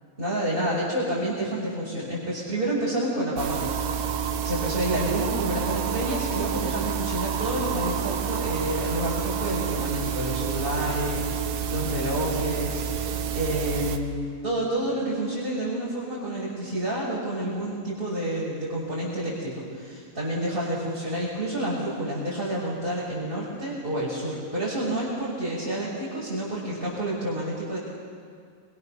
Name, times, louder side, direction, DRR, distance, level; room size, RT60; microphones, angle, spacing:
voice 1, 0.2-4.1 4.4-27.8, right 1 dB, 15° right, -7 dB, 6.5 m, -29 dB
sound 1, 3.4-14.0, right 7 dB, 75° right, 3.0 m, -29 dB
29.0 x 25.5 x 6.8 m, 2.1 s
omnidirectional pair, 3.8 m